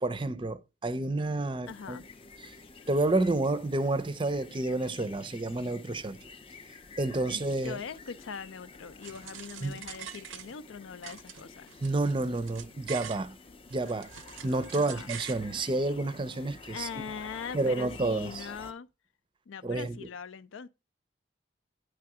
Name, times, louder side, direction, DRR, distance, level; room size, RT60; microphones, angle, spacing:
voice 1, 0.0-2.0 2.4-2.5 2.9-6.2 7.0-7.8 9.6-9.8 11.8-13.4 13.7-14.1 14.4-16.9 17.5-18.5 19.6-20.1, right 2 dB, 25° right, 0.5 m, -30 dB
sound 1, 1.6-18.7, left 4 dB, 30° left, 0.4 m, -50 dB
voice 2, 1.7-2.0 7.3-11.7 14.7-15.1 16.7-18.9 19.5-20.7, left 6 dB, 85° left, 0.5 m, -41 dB
sound 2, 9.0-10.7 11.0-13.3 13.7-15.4, right 9 dB, 80° right, 0.6 m, -44 dB
9.5 x 3.4 x 4.8 m
head